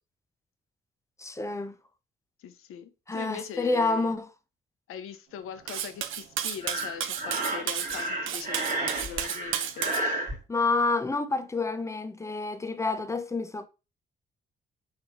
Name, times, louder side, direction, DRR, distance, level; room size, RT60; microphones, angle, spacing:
voice 1, 1.2-1.7 3.1-4.3 10.5-13.7, left 3 dB, 15° left, 0.5 m, -28 dB
voice 2, 2.4-4.1 4.9-9.9, left 8 dB, 80° left, 0.6 m, -41 dB
Cutlery silverware, 5.7-10.0, right 10 dB, 70° right, 0.5 m, -32 dB
Breathing, 6.6-10.3, right 1 dB, 40° right, 1.1 m, -32 dB
4.8 x 4.1 x 2.5 m
cardioid pair, 95°, 21 cm